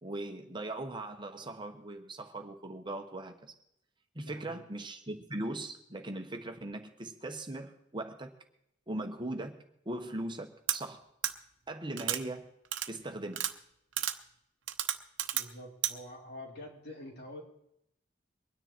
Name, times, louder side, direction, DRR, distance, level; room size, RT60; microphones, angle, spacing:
voice 1, 0.0-3.5 4.1-8.3 8.9-9.6 9.8-11.0 11.7-12.5 12.9-13.5, right 1 dB, 25° right, 5 dB, 1.1 m, -39 dB
voice 2, 4.2-4.6 15.3-17.4, left 1 dB, 60° left, -1 dB, 3.7 m, -46 dB
sound 1, 10.7-10.8 11.2-11.3 12.0-12.2 12.7-12.9 13.3-13.5 14.0-14.1 14.7-15.4 15.8-15.9, right 12 dB, 85° right, 0.9 m, -31 dB
23.0 x 10.0 x 4.4 m, 0.78 s
head